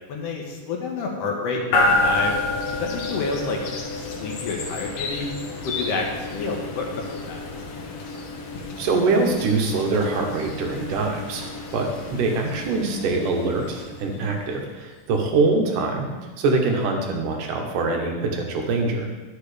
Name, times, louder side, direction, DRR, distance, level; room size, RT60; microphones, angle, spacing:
voice 1, 0.1-2.3 2.8-3.6 4.0-5.3 5.6-7.5, left 4 dB, 60° left, 0 dB, 1.8 m, -29 dB
sound 1, 1.7-14.7, left 2 dB, 80° left, 2.6 m, -29 dB
voice 2, 8.8-16.1 16.4-19.1, right 3 dB, 75° right, 2 dB, 2.6 m, -24 dB
12.0 x 6.9 x 3.3 m, 1.3 s
omnidirectional pair, 3.8 m